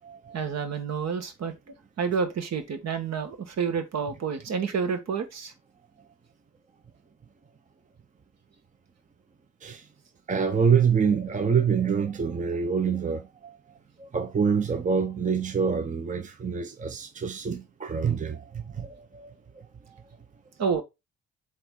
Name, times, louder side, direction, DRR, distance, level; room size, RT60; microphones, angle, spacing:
voice 1, 0.3-1.5 2.0-5.5 20.6-20.8, right 6 dB, 60° right, 1.7 m, -29 dB
voice 2, 10.3-13.5 14.0-19.3, right 6 dB, 25° right, 0.8 m, -26 dB
7.9 x 3.2 x 3.9 m
cardioid pair, 90°, 30 cm